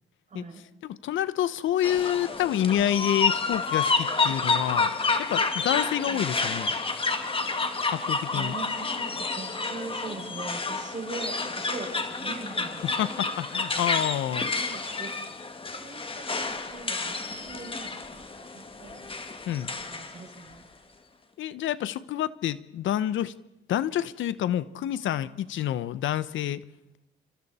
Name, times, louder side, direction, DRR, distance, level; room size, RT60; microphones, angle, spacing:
voice 1, 0.3-0.6 6.0-6.2 8.3-14.0 14.4-15.1 15.7-19.0 19.9-20.6 25.0-25.4, right 3 dB, 40° right, 2 dB, 6.1 m, -42 dB
voice 2, 0.8-4.9 5.3-6.7 7.9-8.5 13.0-14.5 19.5-19.7 21.4-23.3 23.7-26.6, left 11 dB, 75° left, 16 dB, 0.9 m, -28 dB
sound 1, 1.8-20.2, left 4 dB, 25° left, 2.2 m, -29 dB
28.5 x 26.0 x 4.3 m, 0.89 s
cardioid pair, 90°, 20 cm